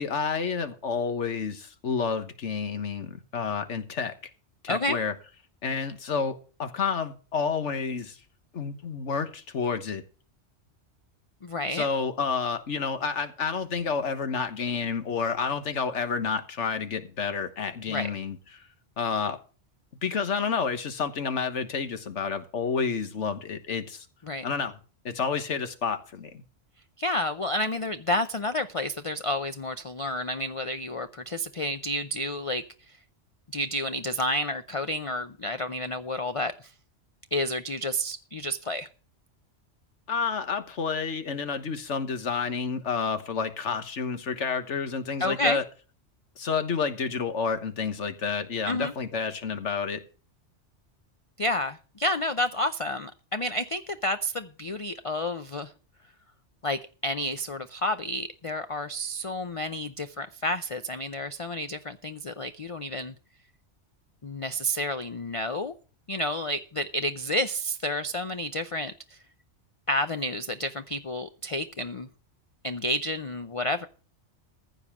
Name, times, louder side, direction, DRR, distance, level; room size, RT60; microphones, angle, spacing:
voice 1, 0.0-4.1 4.6-5.1 5.6-8.2 8.5-10.0 11.7-18.6 19.0-19.4 20.0-24.0 24.4-24.8 25.0-26.4 40.1-45.6 46.4-50.0, left 5 dB, 75° left, 10 dB, 1.5 m, -30 dB
voice 2, 4.7-5.0 11.4-11.9 17.9-18.1 24.2-24.4 27.0-32.6 33.5-36.7 37.3-38.9 45.2-45.6 48.7-48.9 51.4-55.7 56.6-63.1 64.2-65.7 66.1-68.9 69.9-72.1 72.6-73.9, left 1 dB, 40° left, 10 dB, 0.5 m, -30 dB
15.0 x 5.5 x 7.2 m, 0.38 s
omnidirectional pair, 1.2 m